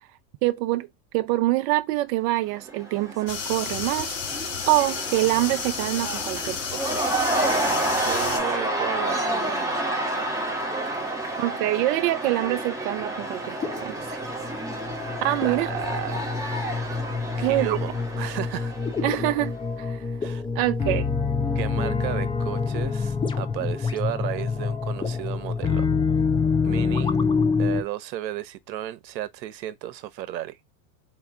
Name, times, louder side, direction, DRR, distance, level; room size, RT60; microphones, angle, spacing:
voice 1, 0.4-0.9 1.1-4.1 4.7-7.0 11.4-14.2 15.2-15.7 17.4-17.8 19.0-20.0 20.5-21.1, right 17 dB, 55° right, 0.7 m, -25 dB
Cheering / Crowd, 2.5-19.4, right 1 dB, 5° right, 1.5 m, -30 dB
sound 1, 3.3-8.4, left 6 dB, 40° left, 1.9 m, -32 dB
voice 2, 7.4-10.0 15.4-16.3 17.4-18.7 20.2-20.4 21.5-25.8 26.6-27.2 27.6-30.6, right 13 dB, 90° right, 0.9 m, -34 dB
sound 2, 10.7-10.9 13.6-27.8, left 5 dB, 10° left, 0.5 m, -26 dB
4.5 x 3.1 x 3.4 m
supercardioid pair, 120°, 49 cm